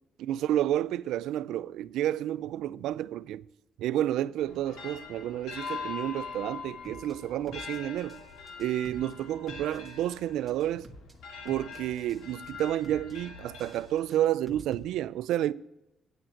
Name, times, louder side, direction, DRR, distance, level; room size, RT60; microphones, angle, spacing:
voice 1, 0.2-3.4 3.8-8.2 8.6-10.9 11.4-15.5, right 12 dB, 85° right, 0.3 m, -30 dB
sound 1, 4.4-14.3, left 5 dB, 85° left, 1.8 m, -43 dB
sound 2, 6.8-7.1 7.5-8.2 8.5-9.1 9.5-10.2 10.5-11.1 11.5-12.2 12.5-13.1 13.5-14.8, right 2 dB, 15° right, 1.5 m, -49 dB
8.9 x 8.9 x 5.8 m
cardioid pair, 90°, 0 cm